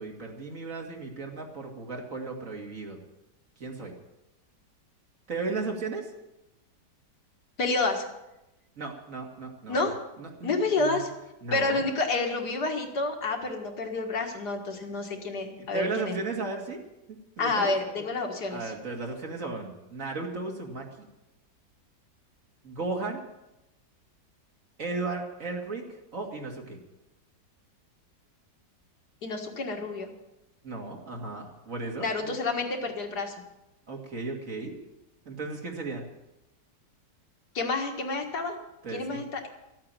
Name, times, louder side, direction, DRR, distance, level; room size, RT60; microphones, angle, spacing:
voice 1, 0.0-3.0 3.6-3.9 5.3-6.1 8.8-9.8 10.2-10.5 10.8-11.1 11.4-11.8 15.6-16.8 17.1-17.7 18.5-21.1 22.6-23.2 24.8-25.8 26.1-26.8 30.6-32.4 33.9-34.8 35.3-36.0 38.8-39.2, right 3 dB, 50° right, 2 dB, 2.5 m, -35 dB
voice 2, 7.6-8.0 9.7-10.0 10.4-11.1 11.5-16.2 17.4-18.7 29.2-30.1 32.0-33.3 37.5-38.6 38.9-39.5, left 3 dB, 70° left, 3 dB, 2.4 m, -29 dB
14.0 x 8.7 x 9.0 m, 0.93 s
omnidirectional pair, 1.8 m